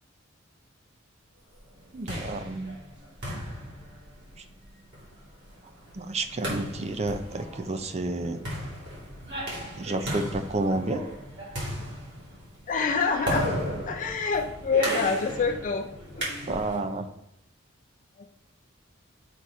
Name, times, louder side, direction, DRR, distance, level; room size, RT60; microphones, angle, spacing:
sound 1, 1.7-16.9, equal, 60° right, 2.6 m, -35 dB
voice 1, 1.9-2.8 5.9-8.4 9.8-11.0 16.5-17.1, right 2 dB, 35° right, 8 dB, 0.6 m, -30 dB
voice 2, 12.7-13.5 13.9-15.9 16.2-16.6 18.2-18.3, left 4 dB, 40° left, 3 dB, 0.5 m, -27 dB
6.3 x 4.8 x 4.2 m, 0.77 s
head